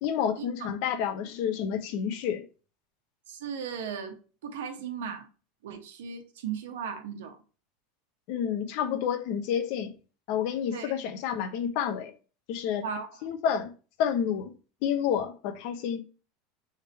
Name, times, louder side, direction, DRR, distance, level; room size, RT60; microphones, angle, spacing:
voice 1, 0.0-2.4 8.3-9.9 10.3-12.1 12.5-12.8 13.2-13.7 14.0-14.5 14.8-16.0, left 8 dB, 55° left, 0.7 m, -29 dB
voice 2, 3.3-4.2 4.4-5.3 5.6-7.4 10.7-10.9 12.8-13.1, right 7 dB, 90° right, 1.1 m, -36 dB
3.6 x 3.4 x 4.3 m
supercardioid pair, 150°, 0 cm